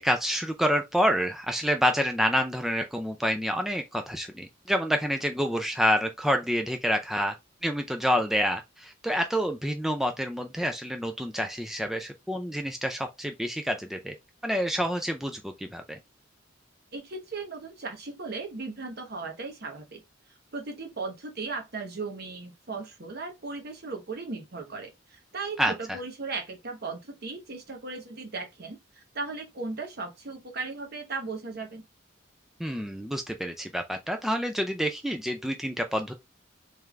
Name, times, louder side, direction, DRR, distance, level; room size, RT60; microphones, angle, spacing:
voice 1, 0.0-7.4 7.6-14.1 14.4-16.0 25.6-25.7 32.6-36.1, equal, ahead, 0.3 m, -28 dB
voice 2, 16.9-20.0 20.5-31.8, right 3 dB, 55° right, 1.1 m, -37 dB
3.6 x 3.3 x 3.1 m
head